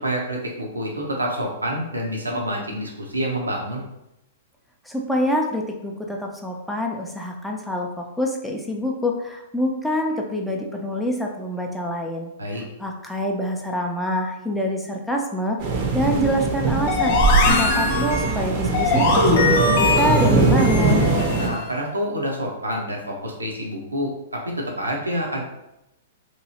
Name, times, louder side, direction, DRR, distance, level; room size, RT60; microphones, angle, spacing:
voice 1, 0.0-3.8 12.4-12.6 21.4-25.4, equal, 85° right, 0 dB, 0.7 m, -27 dB
voice 2, 4.9-12.3 12.8-15.6 15.9-17.2 17.5-21.1, equal, ahead, 0 dB, 0.4 m, -26 dB
sound 1, 15.6-21.5, right 3 dB, 40° right, 0.6 m, -21 dB
sound 2, 16.9-21.8, left 3 dB, 50° left, 0.6 m, -22 dB
3.0 x 2.6 x 2.8 m, 0.88 s
figure-of-eight pair, 105°, 0 cm